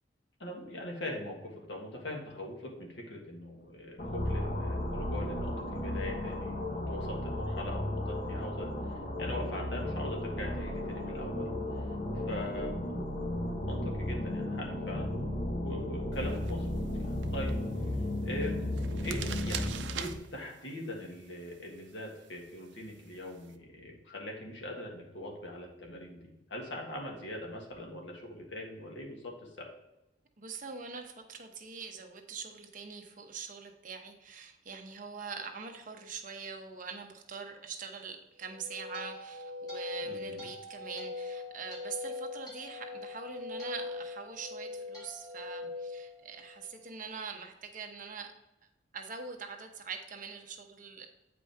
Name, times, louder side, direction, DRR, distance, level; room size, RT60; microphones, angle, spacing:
voice 1, 0.4-11.9 12.3-12.8 13.6-17.5 18.2-18.7 19.0-26.2 26.5-29.7 40.0-40.4, left 1 dB, 80° left, 0 dB, 1.7 m, -41 dB
Bed of entanglement, 4.0-20.2, left 1 dB, 45° left, 1.0 m, -34 dB
sound 1, 16.1-23.5, right 9 dB, 80° right, 0.5 m, -46 dB
voice 2, 30.4-48.3 48.9-51.1, right 5 dB, 50° right, 4 dB, 0.9 m, -43 dB
sound 2, 38.4-46.8, left 3 dB, 25° left, 2.4 m, -41 dB
8.5 x 5.0 x 3.5 m, 0.96 s
head